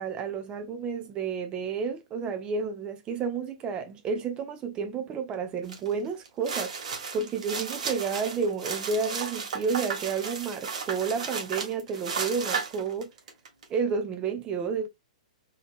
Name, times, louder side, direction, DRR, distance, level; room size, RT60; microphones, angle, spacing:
voice 1, 0.0-6.7 7.1-13.1 13.7-14.9, right 5 dB, 25° right, 0.7 m, -31 dB
sound 1, 5.7-5.9 6.3-13.6, right 5 dB, 70° right, 1.8 m, -34 dB
3.9 x 3.4 x 2.4 m
hypercardioid pair, 130°, 4 cm